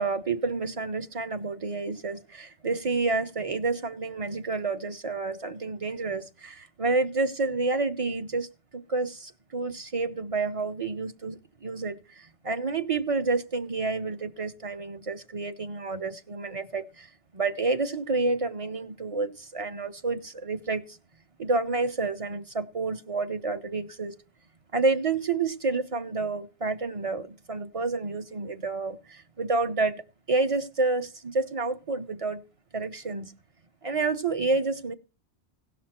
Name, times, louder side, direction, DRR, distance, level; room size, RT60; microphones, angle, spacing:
voice 1, 0.0-21.0 21.4-24.2 24.7-30.0 30.3-32.4 32.7-33.3 33.8-34.9, right 3 dB, 35° right, 9 dB, 0.7 m, -29 dB
17.0 x 6.0 x 4.3 m, 0.32 s
omnidirectional pair, 1.2 m